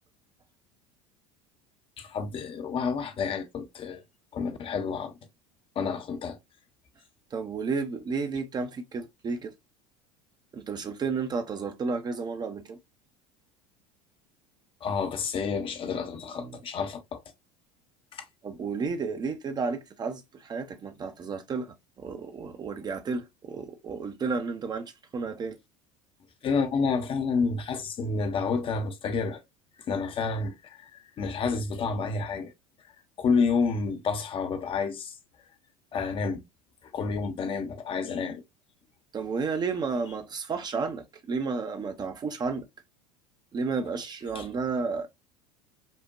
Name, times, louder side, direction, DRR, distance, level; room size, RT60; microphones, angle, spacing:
voice 1, 2.0-4.0 4.3-5.1 5.8-6.4 14.8-17.2 18.1-18.2 26.4-29.4 29.9-32.5 33.2-35.1 35.9-36.4 36.9-38.4 44.3-44.5, left 5 dB, 30° left, 0.6 m, -29 dB
voice 2, 7.3-9.5 10.5-12.8 15.9-16.1 16.4-16.6 18.4-25.6 39.1-42.7 43.5-45.1, right 4 dB, 25° right, 0.5 m, -32 dB
5.2 x 2.1 x 2.4 m
figure-of-eight pair, 70°, 18 cm